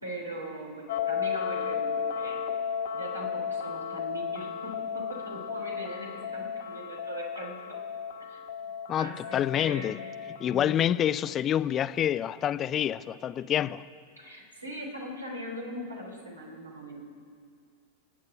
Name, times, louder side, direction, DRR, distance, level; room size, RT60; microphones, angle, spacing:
voice 1, 0.0-2.4 2.9-7.8 8.2-8.7 9.0-10.1 10.4-11.0 14.2-17.1, equal, 80° right, 3.2 m, -40 dB
sound 1, 0.9-10.6, left 7 dB, 60° left, 1.2 m, -34 dB
voice 2, 8.9-10.0 10.4-13.8, left 10 dB, 30° left, 0.5 m, -27 dB
28.5 x 9.6 x 4.9 m
figure-of-eight pair, 90°, 0 cm